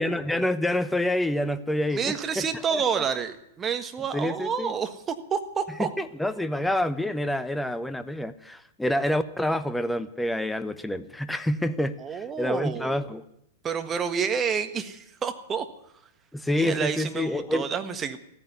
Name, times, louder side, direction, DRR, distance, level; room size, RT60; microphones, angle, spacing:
voice 1, 0.0-2.5 2.7-3.0 4.1-4.7 5.8-13.2 16.3-17.7, left 1 dB, 5° left, 12 dB, 0.9 m, -27 dB
voice 2, 1.9-5.9 12.0-13.0 13.6-15.7 16.5-18.2, right 7 dB, 20° right, 8 dB, 1.5 m, -29 dB
14.5 x 9.9 x 9.4 m, 0.79 s
figure-of-eight pair, 105°, 0 cm